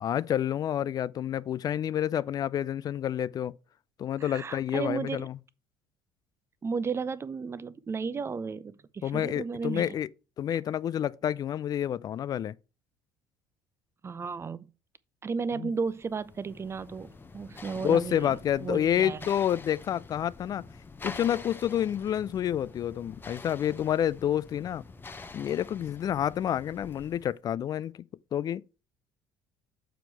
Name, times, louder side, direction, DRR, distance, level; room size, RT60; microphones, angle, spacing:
voice 1, 0.0-3.5 4.0-5.4 9.0-10.1 10.4-12.5 15.6-15.7 17.8-20.7 21.0-24.8 25.3-27.9 28.3-28.6, left 10 dB, 40° left, 0.4 m, -29 dB
voice 2, 4.2-5.3 6.6-9.9 14.0-14.7 15.2-19.3, right 5 dB, 25° right, 0.6 m, -34 dB
sound 1, 15.9-27.4, left 3 dB, 20° left, 0.7 m, -46 dB
7.0 x 4.5 x 4.7 m
hypercardioid pair, 60°, 10 cm